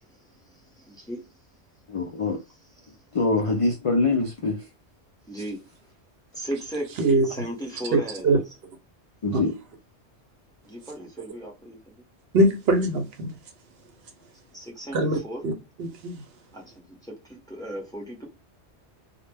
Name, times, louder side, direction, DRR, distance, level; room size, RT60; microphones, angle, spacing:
voice 1, 0.8-1.2 5.3-5.6 6.3-8.4 10.7-11.8 14.5-15.5 16.5-18.2, equal, 5° left, 0.6 m, -36 dB
voice 2, 1.9-2.4 3.1-4.6 9.2-9.5, left 3 dB, 65° left, 0.3 m, -24 dB
voice 3, 7.9-8.4 9.3-9.4 12.3-13.3 14.9-15.2 15.4-15.5 15.8-16.1, right 2 dB, 65° right, 0.8 m, -22 dB
2.1 x 2.1 x 3.2 m
omnidirectional pair, 1.2 m